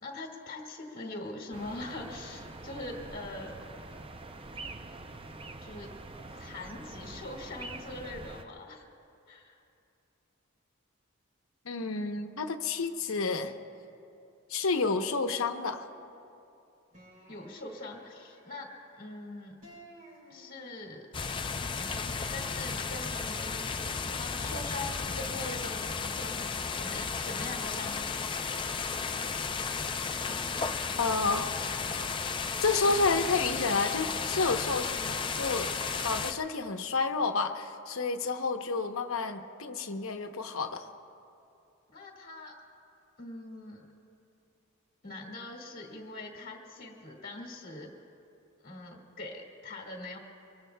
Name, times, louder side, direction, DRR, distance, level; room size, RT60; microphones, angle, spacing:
voice 1, 0.0-3.6 5.6-5.9 6.3-8.8 9.3-9.6 17.3-19.5 20.3-21.1 22.3-28.2 34.3-34.6 41.9-42.6 43.2-43.9 45.0-47.9 48.6-50.2, left 2 dB, 45° left, -3 dB, 1.9 m, -42 dB
sound 1, 1.5-8.5, right 2 dB, 25° right, 0.5 m, -45 dB
voice 2, 11.6-13.5 14.5-15.9 31.0-31.5 32.6-35.7 36.0-40.9, left 4 dB, 80° left, 6 dB, 0.9 m, -30 dB
sound 2, 16.9-19.1 19.6-21.0 21.8-24.7 25.0-27.4 27.7-29.7 30.2-32.2 32.8-33.9, equal, 40° right, 3.6 m, -54 dB
sound 3, 21.1-36.3, left 5 dB, 25° left, 0.4 m, -34 dB
24.0 x 24.0 x 2.3 m, 2.7 s
head